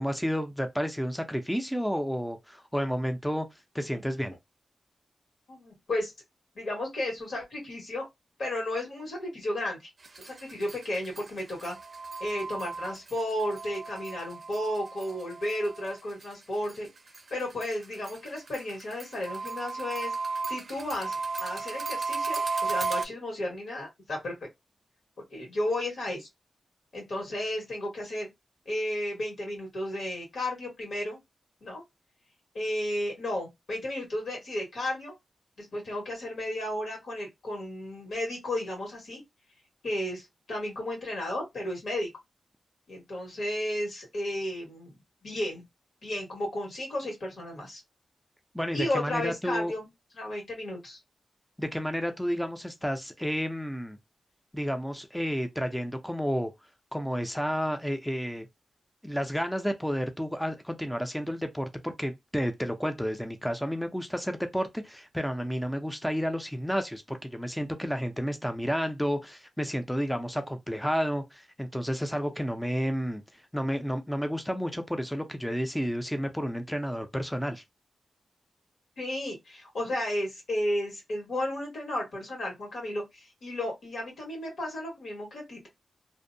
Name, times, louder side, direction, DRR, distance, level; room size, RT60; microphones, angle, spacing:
voice 1, 0.0-3.5 3.7-4.3 48.5-49.7 51.6-54.0 54.5-56.5 56.9-58.5 59.0-73.2 73.5-77.6, equal, 5° left, 0.4 m, -31 dB
voice 2, 5.5-6.1 6.5-8.1 8.4-11.8 12.2-16.9 17.3-20.1 20.5-24.3 25.3-26.3 26.9-28.3 28.6-31.2 31.6-31.8 32.5-35.1 35.6-39.2 39.8-42.1 42.9-45.0 45.2-45.7 46.0-47.8 48.7-49.9 50.1-51.0 79.0-85.7, left 1 dB, 75° left, 1.4 m, -33 dB
sound 1, 10.0-16.3 16.6-23.0, right 4 dB, 50° right, 0.5 m, -35 dB
2.5 x 2.0 x 2.6 m
wide cardioid pair, 80°, 0 cm